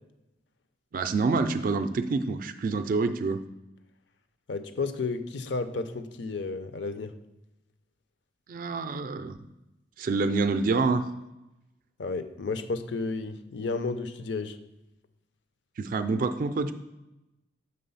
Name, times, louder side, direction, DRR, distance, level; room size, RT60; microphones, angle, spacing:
voice 1, 0.9-3.4 8.5-9.4 10.0-11.1 15.8-16.7, right 4 dB, 50° right, 9 dB, 0.4 m, -27 dB
voice 2, 4.5-7.1 12.0-14.6, left 3 dB, 70° left, 10 dB, 0.6 m, -32 dB
6.7 x 3.9 x 5.5 m, 0.93 s
head